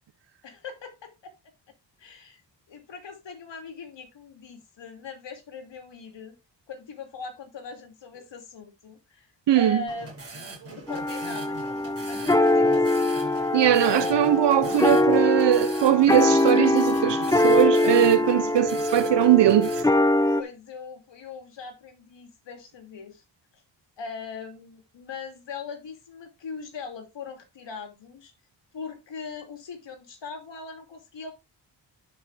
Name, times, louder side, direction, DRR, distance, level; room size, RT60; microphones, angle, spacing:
voice 1, 0.4-1.3 2.0-2.4 2.7-6.4 6.7-9.3 9.5-14.3 20.3-23.2 23.5-23.6 24.0-28.3 28.7-31.3, left 5 dB, 70° left, 2.9 m, -40 dB
voice 2, 9.5-9.8 13.5-19.7, right 12 dB, 65° right, 0.8 m, -20 dB
sound 1, 9.9-19.8, right 2 dB, 30° right, 6.0 m, -41 dB
sound 2, 10.9-20.4, left 2 dB, 10° left, 0.6 m, -23 dB
11.0 x 6.2 x 3.6 m
wide cardioid pair, 165°, 45 cm